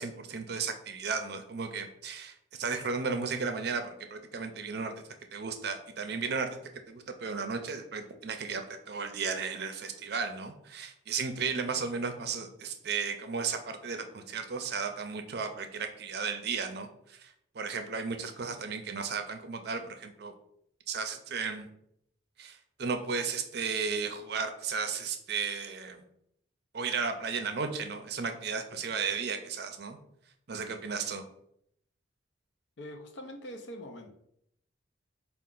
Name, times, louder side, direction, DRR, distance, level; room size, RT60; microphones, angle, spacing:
voice 1, 0.0-4.9 5.3-6.6 6.9-20.3 20.9-21.7 22.4-26.0 26.7-30.0 30.5-31.2, right 5 dB, 55° right, 7 dB, 0.5 m, -34 dB
voice 2, 32.8-34.1, equal, 65° left, 4 dB, 0.7 m, -43 dB
4.5 x 2.4 x 3.8 m, 0.72 s
head